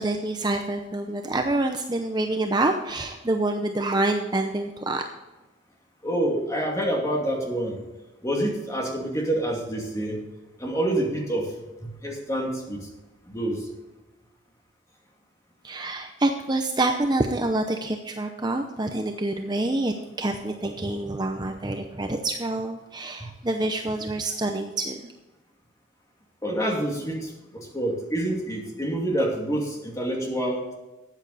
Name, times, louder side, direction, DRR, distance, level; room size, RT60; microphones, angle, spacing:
voice 1, 0.0-5.0 15.6-25.1, right 2 dB, 20° right, 4 dB, 0.7 m, -27 dB
voice 2, 6.0-7.8 8.2-10.2 10.6-11.5 11.8-12.8 13.3-13.6 23.2-23.3 26.4-30.7, right 1 dB, 15° left, -1 dB, 2.5 m, -27 dB
13.5 x 8.9 x 4.2 m, 1.1 s
head